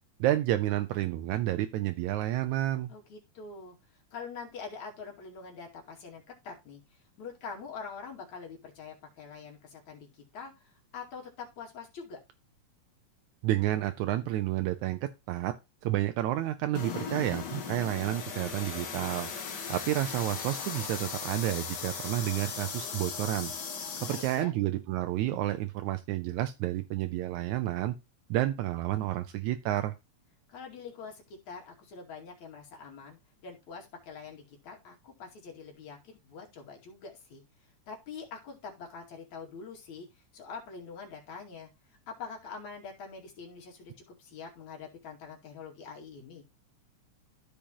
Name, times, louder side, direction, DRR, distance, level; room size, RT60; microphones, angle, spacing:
voice 1, 0.2-2.9 13.4-15.5 15.8-19.3 19.7-23.5 24.0-28.0 28.3-29.9, right 14 dB, 85° right, 2.0 m, -30 dB
voice 2, 2.9-12.2 23.9-24.5 30.5-37.4 37.9-46.4, left 5 dB, 75° left, 3.7 m, -45 dB
sound 1, 16.7-24.4, left 6 dB, 50° left, 1.4 m, -38 dB
14.0 x 5.0 x 2.9 m
omnidirectional pair, 3.3 m